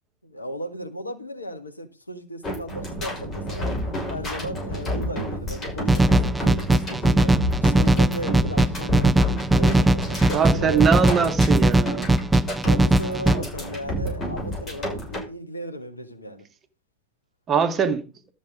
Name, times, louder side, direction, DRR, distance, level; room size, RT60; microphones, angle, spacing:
voice 1, 0.2-3.7 4.1-11.3 12.4-16.4, equal, 80° left, 1.7 m, -36 dB
sound 1, 2.4-15.2, equal, 25° left, 6.2 m, -30 dB
sound 2, 5.9-13.4, right 1 dB, 10° right, 0.6 m, -19 dB
voice 2, 10.3-12.1 17.5-18.0, right 7 dB, 25° right, 1.7 m, -22 dB
12.5 x 7.3 x 5.3 m
figure-of-eight pair, 90°, 0 cm